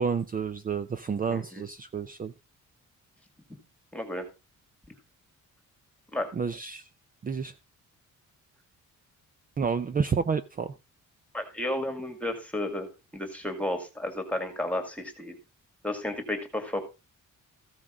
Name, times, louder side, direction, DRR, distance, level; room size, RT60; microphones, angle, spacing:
voice 1, 0.0-2.3 6.3-6.9 7.2-7.5 9.6-10.7, right 6 dB, 25° right, 0.5 m, -29 dB
voice 2, 1.3-1.6 3.9-4.3 6.1-6.3 11.3-15.4 15.8-16.8, left 1 dB, 5° left, 2.2 m, -32 dB
15.0 x 6.1 x 5.0 m
wide cardioid pair, 180°, 32 cm